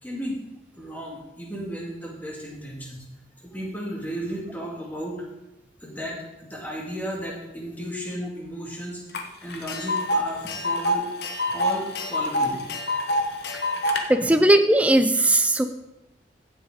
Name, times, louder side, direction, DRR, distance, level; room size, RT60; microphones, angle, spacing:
voice 1, 0.0-0.4 0.8-3.0 3.4-5.2 5.8-9.0 9.4-11.1 11.5-12.6 13.3-13.4, equal, 10° left, -3 dB, 2.0 m, -34 dB
Tick, 9.1-9.2 9.5-14.0, left 1 dB, 60° left, 1.1 m, -26 dB
voice 2, 14.1-15.7, right 1 dB, 5° right, 8 dB, 0.5 m, -18 dB
15.5 x 6.5 x 3.7 m, 0.95 s
head